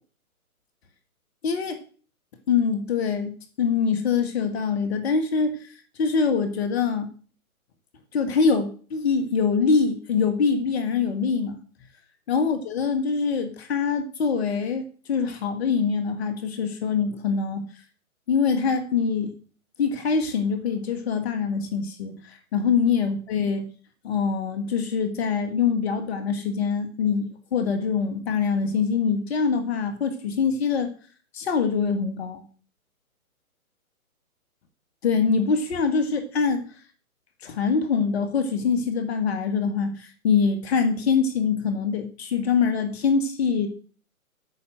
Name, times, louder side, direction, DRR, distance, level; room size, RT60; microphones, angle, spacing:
voice 1, 1.4-1.8 2.5-7.1 8.1-11.6 12.3-17.6 18.3-19.3 19.8-23.7 24.0-30.9 31.3-32.4 35.0-36.6 37.4-43.7, left 5 dB, 45° left, 7 dB, 1.9 m, -24 dB
8.6 x 5.9 x 7.8 m, 0.41 s
hypercardioid pair, 135°, 44 cm